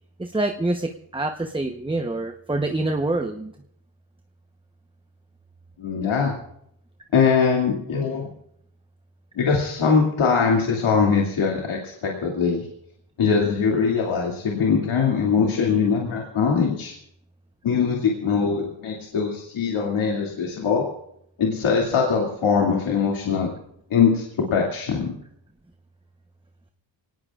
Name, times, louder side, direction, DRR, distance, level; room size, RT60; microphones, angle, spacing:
voice 1, 0.2-3.5, right 2 dB, 10° right, 5 dB, 0.9 m, -26 dB
voice 2, 5.8-6.3 7.1-8.3 9.3-12.7 13.2-16.9 17.6-20.9 21.4-23.5 23.9-25.1, left 5 dB, 80° left, -2 dB, 2.6 m, -22 dB
25.5 x 18.5 x 2.5 m, 0.72 s
cardioid pair, 105°, 47 cm